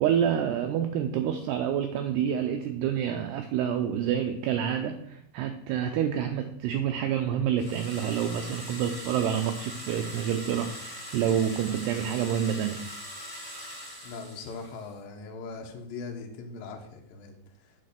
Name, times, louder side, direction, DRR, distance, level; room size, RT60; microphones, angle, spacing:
voice 1, 0.0-12.9, right 9 dB, 85° right, 6 dB, 2.3 m, -28 dB
sound 1, 7.6-14.9, equal, 10° right, 1.3 m, -41 dB
voice 2, 14.0-17.7, left 4 dB, 75° left, 2 dB, 2.1 m, -40 dB
8.4 x 6.6 x 6.6 m, 0.76 s
omnidirectional pair, 5.5 m